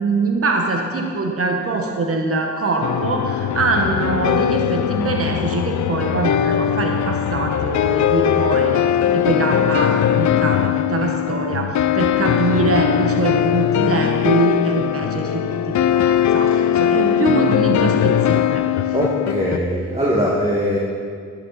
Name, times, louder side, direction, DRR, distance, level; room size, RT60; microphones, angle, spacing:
voice 1, 0.0-8.8 9.1-18.6, right 2 dB, 50° right, 2 dB, 1.3 m, -23 dB
sound 1, 2.8-19.6, left 10 dB, 80° left, 0.5 m, -20 dB
voice 2, 18.9-20.8, equal, 20° right, -4 dB, 1.9 m, -21 dB
11.5 x 11.0 x 4.1 m, 2.2 s
cardioid pair, 65°, 29 cm